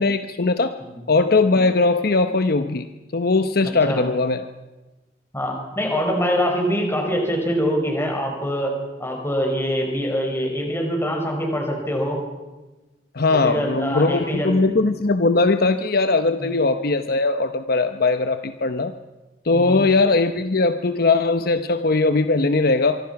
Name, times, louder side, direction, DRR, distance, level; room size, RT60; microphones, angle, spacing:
voice 1, 0.0-0.7 1.1-2.9 3.1-4.4 13.1-18.9 19.4-23.0, left 3 dB, 60° left, 9 dB, 0.9 m, -20 dB
voice 2, 3.6-4.0 5.3-8.7 9.0-12.2 13.3-14.6 16.4-16.6 19.5-19.8, equal, 15° left, 1 dB, 5.9 m, -24 dB
25.5 x 24.0 x 5.9 m, 1.1 s
head